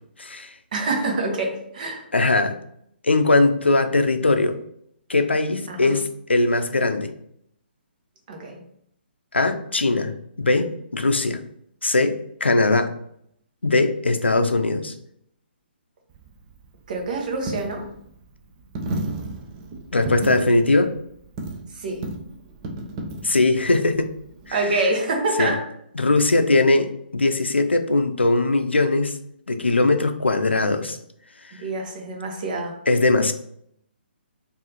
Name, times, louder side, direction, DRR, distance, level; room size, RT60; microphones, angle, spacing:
voice 1, 0.2-0.5 2.1-2.6 3.0-4.6 5.1-7.1 9.3-11.4 11.8-12.9 13.6-14.9 19.9-20.9 23.2-24.1 24.5-24.8 25.4-25.5 26.0-29.1 29.5-31.0 32.9-33.3, left 2 dB, 85° left, 8 dB, 0.5 m, -20 dB
voice 2, 0.7-2.1 5.7-5.9 8.3-8.6 16.9-17.9 21.8-22.0 24.5-25.6 31.6-32.7, right 2 dB, 45° right, 2 dB, 1.1 m, -26 dB
Coin (dropping), 16.1-24.6, right 2 dB, 30° right, 0.6 m, -34 dB
4.7 x 2.7 x 2.9 m, 0.70 s
figure-of-eight pair, 135°, 6 cm